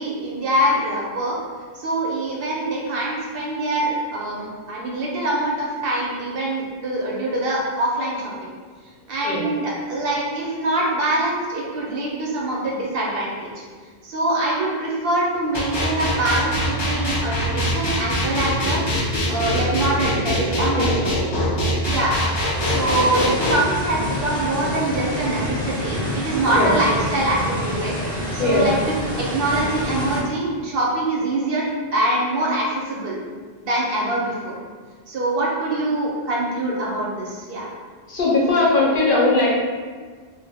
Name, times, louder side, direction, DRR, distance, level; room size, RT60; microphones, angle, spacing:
voice 1, 0.0-1.4 1.8-8.5 9.1-13.5 14.0-18.8 19.3-21.3 21.9-22.2 22.6-27.9 28.3-31.6 31.9-33.2 33.6-34.5 35.1-37.7, right 1 dB, 65° right, -4 dB, 0.8 m, -24 dB
sound 1, 15.5-23.5, equal, 45° left, 0.3 m, -23 dB
sound 2, 22.6-30.2, left 1 dB, 5° left, 0.8 m, -27 dB
voice 2, 38.1-39.5, left 2 dB, 60° left, -5 dB, 0.8 m, -19 dB
2.2 x 2.0 x 3.3 m, 1.5 s
omnidirectional pair, 1.1 m